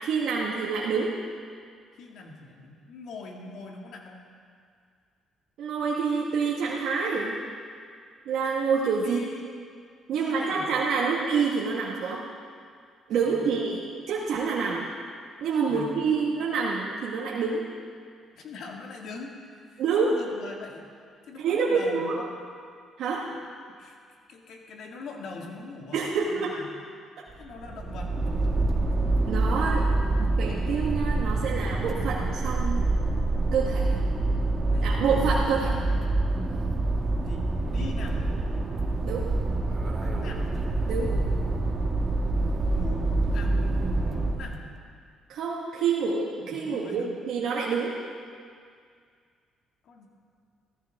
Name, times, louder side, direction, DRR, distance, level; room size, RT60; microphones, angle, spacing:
voice 1, 0.0-1.1 5.6-7.4 8.2-9.2 10.1-12.2 13.1-14.9 15.4-17.6 19.8-20.1 21.4-22.2 23.0-23.2 25.9-26.5 29.3-32.8 33.5-34.0 34.8-35.7 39.0-39.3 40.9-41.2 45.3-48.0, right 5 dB, 75° right, -4 dB, 1.5 m, -27 dB
voice 2, 2.0-4.2 9.0-9.5 10.1-10.7 13.2-13.5 15.6-15.9 18.3-19.3 19.7-20.9 21.3-22.3 23.8-24.0 24.3-26.7 27.4-28.2 34.7-34.9 37.2-38.3 40.0-40.6 42.7-44.7 46.4-47.2 49.8-50.1, left 3 dB, 70° left, 1 dB, 2.0 m, -42 dB
sound 1, 27.3-44.6, right 2 dB, 35° right, 1.6 m, -26 dB
16.5 x 14.0 x 3.6 m, 2.1 s
supercardioid pair, 70°, 0 cm